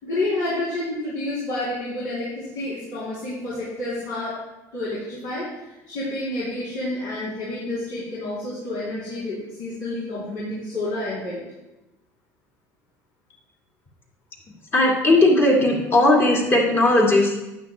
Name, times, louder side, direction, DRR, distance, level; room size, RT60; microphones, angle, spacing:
voice 1, 0.0-4.3 4.7-5.5 5.9-11.4, left 2 dB, 85° left, -9 dB, 3.4 m, -29 dB
voice 2, 14.7-17.4, left 2 dB, 35° left, -1 dB, 2.2 m, -17 dB
12.0 x 10.0 x 2.3 m, 0.98 s
cardioid pair, 155°, 7 cm